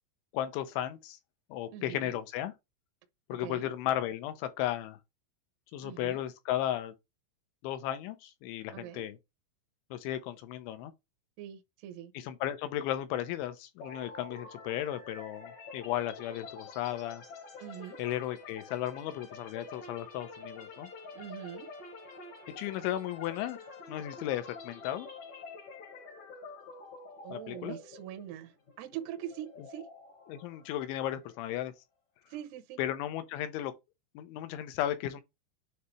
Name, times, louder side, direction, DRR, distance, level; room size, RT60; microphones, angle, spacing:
voice 1, 0.3-1.2 1.5-2.5 3.3-5.0 5.7-6.9 7.6-9.2 9.9-10.9 12.1-17.2 18.0-20.9 22.6-23.6 23.9-25.1 27.3-27.8 30.3-31.7 32.8-33.7 34.2-35.2, left 12 dB, 80° left, 2.9 m, -35 dB
voice 2, 1.7-2.2 3.3-3.7 5.8-6.2 8.7-9.0 11.4-12.1 17.6-18.0 21.1-21.7 27.2-29.9 32.3-32.8, right 11 dB, 80° right, 2.4 m, -43 dB
sound 1, 13.8-31.6, left 3 dB, 60° left, 1.9 m, -48 dB
9.5 x 3.4 x 3.2 m
omnidirectional pair, 5.7 m